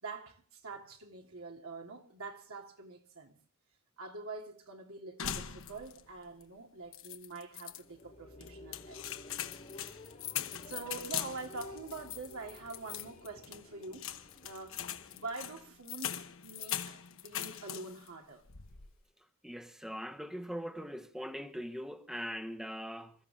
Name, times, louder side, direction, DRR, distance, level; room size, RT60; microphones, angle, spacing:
voice 1, 0.0-3.3 4.0-9.0 10.7-14.1 14.4-18.4, right 3 dB, 85° right, 3.0 m, -45 dB
sound 1, 5.2-6.1 6.4-6.5 6.9-7.8 8.4-18.1 18.4-19.0, left 10 dB, 65° left, 1.1 m, -41 dB
sound 2, 7.6-16.2, left 2 dB, 35° left, 1.6 m, -54 dB
voice 2, 19.4-23.1, equal, ahead, 0.9 m, -41 dB
27.5 x 14.5 x 3.7 m
head